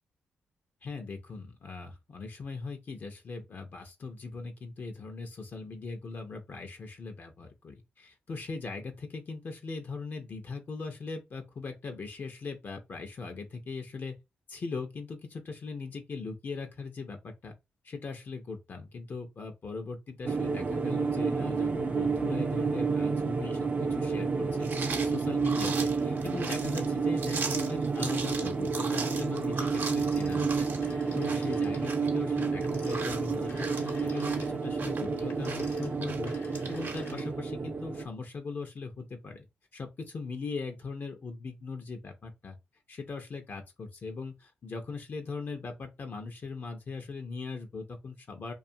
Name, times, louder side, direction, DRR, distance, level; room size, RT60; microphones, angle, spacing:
voice 1, 0.8-14.2 14.5-17.5 17.8-30.7 31.1-34.3 34.6-36.3 36.7-39.5 39.7-42.6 42.9-48.5, left 4 dB, 55° left, 0.5 m, -40 dB
sound 1, 20.2-38.0, right 4 dB, 40° right, 0.4 m, -30 dB
sound 2, 24.6-37.1, right 4 dB, 55° right, 0.7 m, -39 dB
Telephone, 29.8-31.9 32.6-37.6, left 3 dB, 85° left, 0.9 m, -51 dB
2.4 x 2.3 x 2.6 m
cardioid pair, 60°, 4 cm